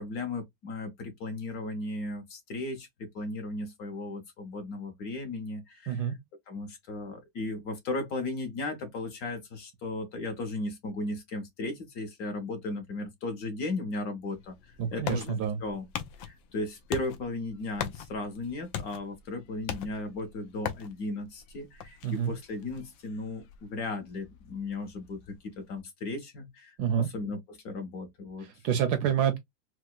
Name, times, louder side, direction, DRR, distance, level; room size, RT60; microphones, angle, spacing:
voice 1, 0.0-6.2 6.5-15.9 16.2-28.6, left 2 dB, 60° left, 1.1 m, -36 dB
sound 1, 14.3-25.8, left 9 dB, 85° left, 1.3 m, -42 dB
voice 2, 14.8-15.6 22.0-22.3 26.8-27.1 28.4-29.4, right 9 dB, 70° right, 1.0 m, -28 dB
4.6 x 2.0 x 2.2 m
omnidirectional pair, 2.0 m